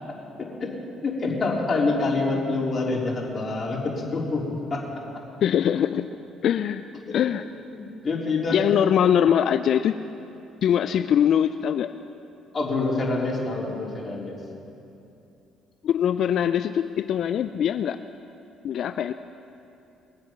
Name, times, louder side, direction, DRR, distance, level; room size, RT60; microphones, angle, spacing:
voice 1, 1.0-4.9 7.0-7.1 7.7-8.6 12.5-14.4, left 3 dB, 35° left, -3 dB, 3.7 m, -26 dB
voice 2, 5.4-6.1 6.4-6.8 7.1-7.4 8.5-9.9 10.6-11.9 15.8-18.0 18.6-19.1, left 9 dB, 65° left, 11 dB, 0.4 m, -22 dB
22.0 x 7.7 x 5.8 m, 2.7 s
supercardioid pair, 75°, 0 cm